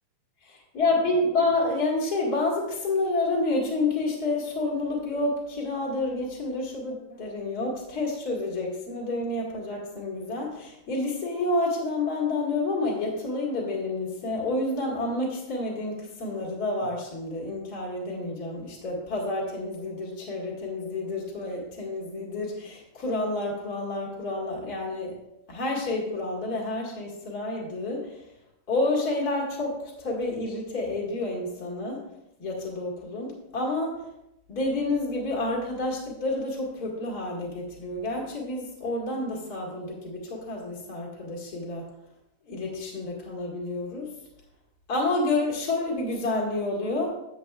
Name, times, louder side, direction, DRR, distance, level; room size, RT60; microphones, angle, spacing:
voice 1, 0.7-25.1 25.5-28.1 28.7-32.0 32.4-34.0 34.5-41.9 42.5-44.1 44.9-47.1, left 2 dB, 50° left, -4 dB, 1.1 m, -29 dB
12.5 x 7.7 x 2.4 m, 0.86 s
omnidirectional pair, 5.1 m